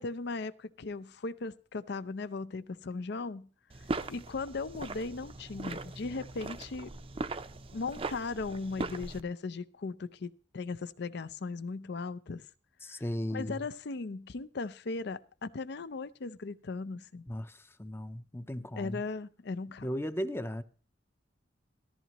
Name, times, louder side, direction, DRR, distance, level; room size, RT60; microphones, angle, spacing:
voice 1, 0.0-3.5 4.1-6.9 7.7-12.4 12.9-13.0 13.3-17.2 18.8-19.9, left 3 dB, 60° left, 0.5 m, -37 dB
sound 1, 3.7-9.2, right 3 dB, 30° right, 0.6 m, -39 dB
voice 2, 12.8-13.6 17.3-19.0 19.8-20.6, equal, 15° left, 0.6 m, -36 dB
14.0 x 14.0 x 3.0 m
head